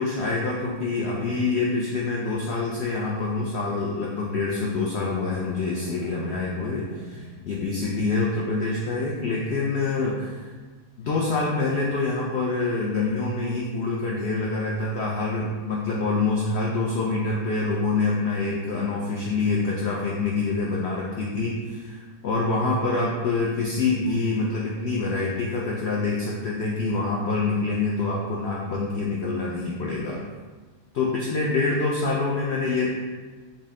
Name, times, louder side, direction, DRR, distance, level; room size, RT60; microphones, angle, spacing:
voice 1, 0.0-10.5 11.0-30.2 30.9-32.9, left 3 dB, 80° left, -3 dB, 0.5 m, -26 dB
sound 1, 5.3-8.4, right 3 dB, 60° right, 0.7 m, -41 dB
3.9 x 2.1 x 3.6 m, 1.4 s
omnidirectional pair, 1.7 m